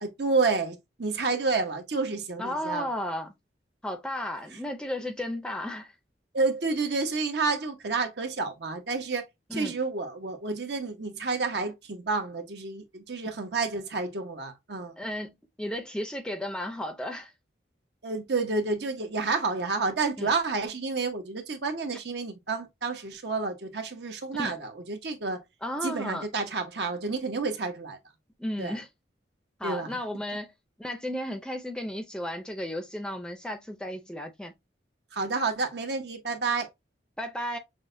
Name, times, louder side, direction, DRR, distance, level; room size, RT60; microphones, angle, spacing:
voice 1, 0.0-2.9 6.3-9.2 9.5-14.9 18.0-25.4 25.8-28.0 28.6-28.7 29.6-30.0 35.1-36.7, right 4 dB, 70° right, 0.9 m, -30 dB
voice 2, 2.4-3.3 3.8-5.9 9.5-9.8 15.0-17.3 20.2-20.3 24.4-24.6 25.6-26.3 28.4-28.9 29.6-30.5 30.8-34.5 37.2-37.6, left 1 dB, 5° left, 0.5 m, -34 dB
6.1 x 2.1 x 2.5 m
head